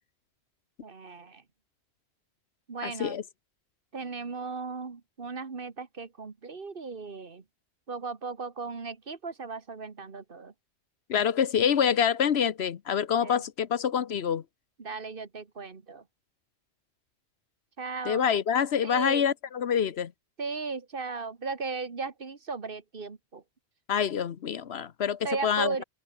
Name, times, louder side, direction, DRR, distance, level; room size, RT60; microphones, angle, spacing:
voice 1, 0.8-1.4 2.7-3.2 3.9-7.4 7.9-10.5 13.2-13.4 14.8-16.0 17.8-18.3 18.8-19.2 20.4-23.4 25.2-25.8, right 4 dB, 50° right, 1.7 m, -36 dB
voice 2, 2.8-3.2 11.1-14.4 18.0-20.1 23.9-25.8, left 8 dB, 70° left, 1.1 m, -26 dB
omnidirectional pair, 1.1 m